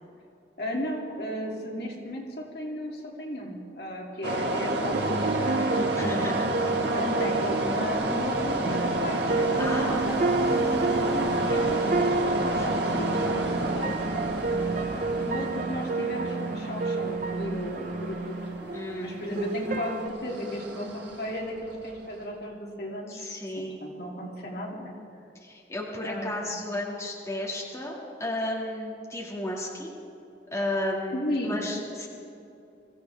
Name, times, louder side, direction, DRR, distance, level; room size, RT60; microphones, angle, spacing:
voice 1, 0.6-6.4 6.9-12.4 12.6-13.5 13.7-13.9 15.2-23.2 23.6-24.9 26.0-26.7 31.1-31.6, left 1 dB, 60° left, -2 dB, 2.7 m, -35 dB
sound 1, 4.2-21.9, right 1 dB, 80° right, 1.6 m, -30 dB
sound 2, 4.9-20.1, right 4 dB, 45° right, 0.5 m, -30 dB
voice 2, 5.9-6.5 9.6-10.1 12.5-12.8 18.7-19.1 19.7-19.9 23.1-23.8 25.4-29.9 30.5-32.1, left 1 dB, 15° left, -4 dB, 2.1 m, -33 dB
sound 3, 7.9-15.3, equal, 85° left, 1.8 m, -42 dB
23.5 x 15.5 x 3.5 m, 2.7 s
head